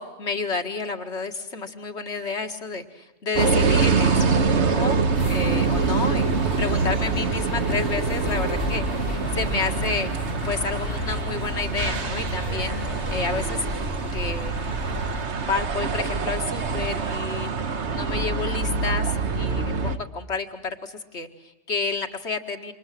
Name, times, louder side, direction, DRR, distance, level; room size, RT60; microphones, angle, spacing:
voice 1, 0.0-5.0 5.3-10.1 10.4-13.7 14.1-14.5 15.4-17.5 17.9-22.7, left 4 dB, 80° left, 6 dB, 2.3 m, -30 dB
sound 1, 3.4-20.0, right 4 dB, 80° right, 1.6 m, -25 dB
sound 2, 5.1-15.3, left 3 dB, 55° left, 1.5 m, -33 dB
28.5 x 26.0 x 7.6 m, 1.0 s
omnidirectional pair, 1.1 m